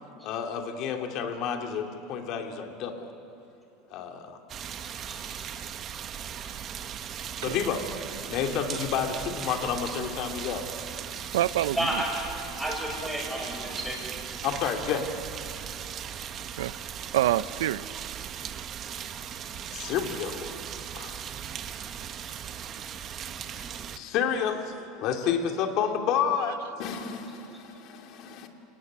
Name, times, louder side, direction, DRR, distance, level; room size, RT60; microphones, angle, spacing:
voice 1, 0.2-3.1 3.9-4.4 7.4-10.6 14.4-15.1 19.7-20.6 20.9-21.2 23.5-23.7 24.0-24.7 25.0-28.5, left 7 dB, 55° left, 4 dB, 2.9 m, -30 dB
sound 1, 4.5-24.0, right 9 dB, 40° right, 1.3 m, -38 dB
voice 2, 4.8-5.5 6.4-6.5 11.7-12.2 12.6-14.4 21.2-21.3 23.6-23.7, right 1 dB, 5° right, -1 dB, 7.7 m, -33 dB
voice 3, 11.3-12.0 16.6-16.7 17.1-17.9, right 13 dB, 85° right, 17 dB, 0.7 m, -26 dB
29.5 x 19.0 x 9.7 m, 2.8 s
supercardioid pair, 105°, 0 cm